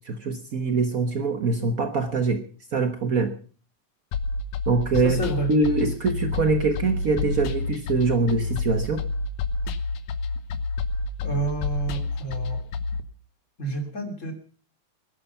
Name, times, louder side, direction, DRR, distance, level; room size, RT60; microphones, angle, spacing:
voice 1, 0.0-2.4 2.7-3.3 4.7-5.2 5.5-9.0, right 4 dB, 80° right, 7 dB, 0.7 m, -24 dB
sound 1, 4.1-13.0, left 3 dB, 80° left, 2.5 m, -29 dB
voice 2, 5.0-5.5 11.2-12.6 13.6-14.3, right 2 dB, 25° left, 4 dB, 3.1 m, -30 dB
20.5 x 11.5 x 5.7 m, 0.42 s
omnidirectional pair, 3.3 m